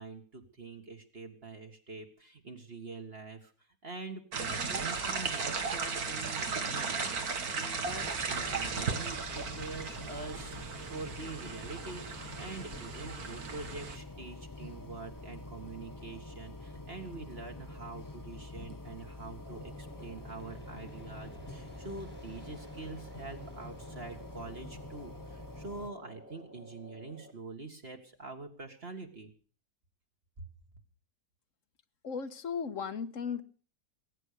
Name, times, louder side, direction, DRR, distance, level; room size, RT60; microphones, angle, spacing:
voice 1, 0.0-3.5 3.8-29.3 30.4-30.5, right 3 dB, 40° right, 3 dB, 2.0 m, -45 dB
sound 1, 4.3-14.0, right 5 dB, 80° right, 2.2 m, -36 dB
sound 2, 7.8-25.9, left 2 dB, 20° left, 0.7 m, -47 dB
sound 3, 19.5-27.3, right 1 dB, 5° right, 1.5 m, -52 dB
voice 2, 32.0-33.4, left 6 dB, 60° left, 12 dB, 1.5 m, -36 dB
21.0 x 9.9 x 6.8 m, 0.43 s
omnidirectional pair, 1.6 m